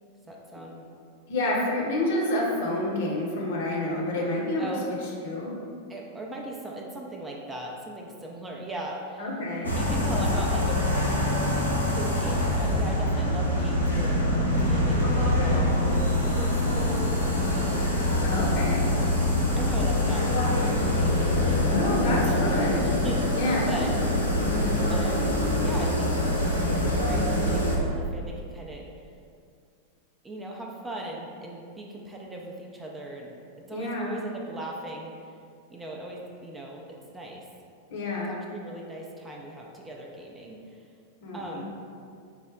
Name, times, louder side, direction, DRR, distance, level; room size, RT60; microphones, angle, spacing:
voice 1, 0.3-0.8 4.6-4.9 5.9-9.3 9.7-11.2 11.9-17.9 19.0-19.3 19.6-21.6 21.9-23.9 24.9-25.3 25.6-26.1 26.6-28.9 30.2-33.4 33.7-35.1 35.7-37.5 38.3-40.9 41.3-41.7, right 1 dB, 15° right, -1 dB, 0.4 m, -38 dB
voice 2, 1.3-5.0 5.2-5.5 9.2-10.2 18.2-18.8 21.6-22.8 23.3-23.7 33.7-34.1 37.9-38.3 41.2-41.6, left 1 dB, 55° left, -2 dB, 0.8 m, -29 dB
sound 1, 9.6-27.8, left 1 dB, 90° left, 0.7 m, -24 dB
4.8 x 2.0 x 3.6 m, 2.3 s
figure-of-eight pair, 90°, 0 cm